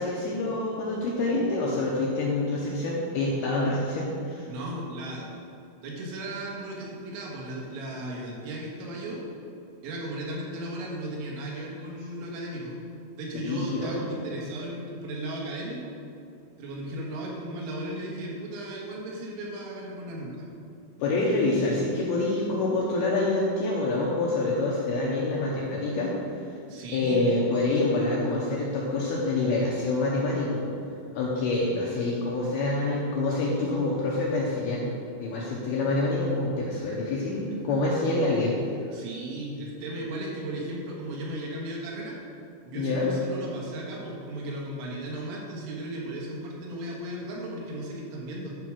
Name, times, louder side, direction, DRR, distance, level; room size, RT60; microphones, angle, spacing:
voice 1, 0.0-4.5 13.4-14.0 21.0-26.1 26.9-30.6 31.1-34.8 35.2-38.5 42.7-43.1, left 2 dB, 75° left, -4 dB, 2.4 m, -26 dB
voice 2, 4.5-5.3 5.8-9.2 9.8-12.7 13.2-15.9 16.6-20.5 26.7-27.2 38.9-42.2 42.7-48.6, right 1 dB, 80° right, -3 dB, 4.0 m, -36 dB
11.0 x 4.8 x 6.2 m, 2.4 s
omnidirectional pair, 5.6 m